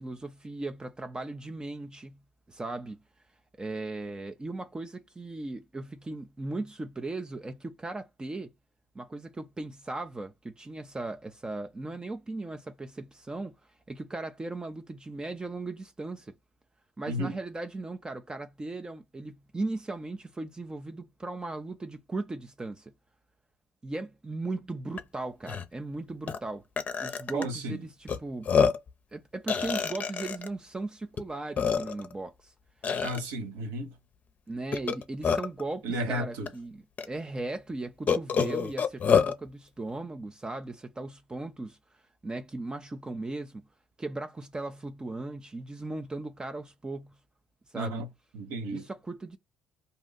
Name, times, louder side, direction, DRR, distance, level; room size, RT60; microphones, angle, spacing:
voice 1, 0.0-2.2 2.5-3.0 3.6-8.5 8.9-13.5 13.9-16.3 17.0-22.9 23.8-26.6 27.0-28.5 29.1-32.5 34.5-41.8 42.2-43.6 44.0-47.1 47.7-48.0 48.7-49.4, right 2 dB, 20° right, 0.5 m, -37 dB
Burping eructation, 25.0-25.1 25.4-25.6 26.3-26.4 26.8-27.4 28.1-28.2 28.5-28.9 29.5-30.5 31.2-31.3 31.6-32.1 32.8-33.2 34.7-35.6 36.5-36.6 37.0-37.1 38.1-39.3, left 6 dB, 40° left, 0.6 m, -26 dB
voice 2, 27.3-27.8 33.0-33.9 35.8-36.5 47.7-48.1 48.3-48.9, right 1 dB, 75° right, 1.1 m, -33 dB
2.7 x 2.4 x 3.9 m
hypercardioid pair, 55°, 4 cm